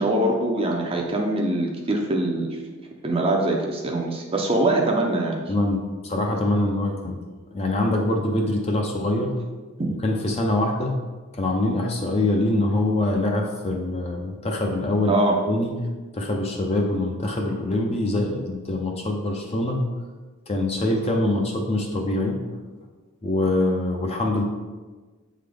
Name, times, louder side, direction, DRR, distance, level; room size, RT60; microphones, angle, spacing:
voice 1, 0.0-2.5 3.0-5.4 9.8-9.9 15.1-15.4, right 1 dB, 25° right, 0 dB, 0.6 m, -23 dB
voice 2, 5.5-7.2 7.5-9.4 10.0-11.0 11.3-15.2 15.5-15.7 16.1-19.9 20.5-22.6 23.2-24.4, left 1 dB, 30° left, 1 dB, 0.6 m, -24 dB
7.6 x 3.8 x 3.4 m, 1.3 s
head